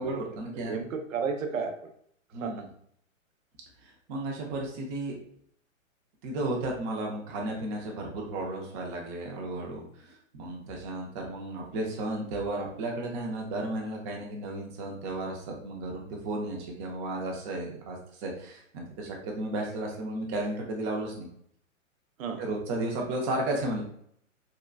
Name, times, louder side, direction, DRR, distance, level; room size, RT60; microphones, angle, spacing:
voice 1, 0.0-0.7 2.3-2.6 3.8-5.2 6.2-21.3 22.4-23.8, right 2 dB, 20° right, 0 dB, 0.5 m, -34 dB
voice 2, 0.5-1.9 2.4-2.5 22.2-22.4, right 5 dB, 75° right, 5 dB, 0.7 m, -33 dB
3.7 x 2.2 x 2.3 m, 0.66 s
hypercardioid pair, 135°, 41 cm